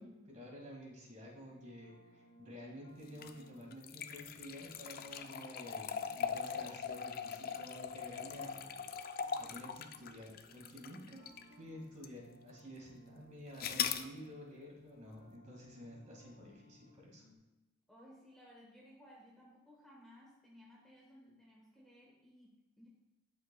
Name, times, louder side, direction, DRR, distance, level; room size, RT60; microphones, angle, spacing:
voice 1, 0.0-8.6 9.4-11.2 11.5-17.2, equal, 35° right, -2 dB, 2.0 m, -51 dB
sound 1, 1.2-17.4, left 1 dB, 85° left, 1.7 m, -63 dB
sound 2, 3.1-11.5 12.0-12.1 13.6-14.1, left 7 dB, 40° left, 0.3 m, -41 dB
voice 2, 17.9-22.9, equal, ahead, -4 dB, 1.1 m, -59 dB
11.5 x 5.5 x 2.3 m, 1.1 s
head